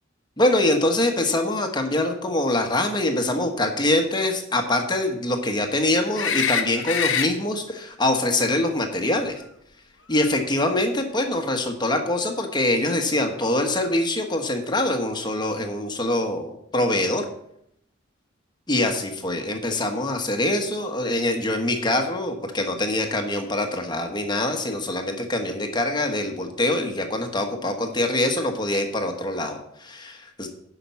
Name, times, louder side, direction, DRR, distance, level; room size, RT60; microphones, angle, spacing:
voice 1, 0.4-9.4 10.1-17.2 18.7-30.5, left 1 dB, 20° left, 4 dB, 1.2 m, -24 dB
sound 1, 6.1-7.3 10.2-10.3, left 7 dB, 75° left, 0.9 m, -24 dB
9.9 x 5.9 x 7.0 m, 0.73 s
head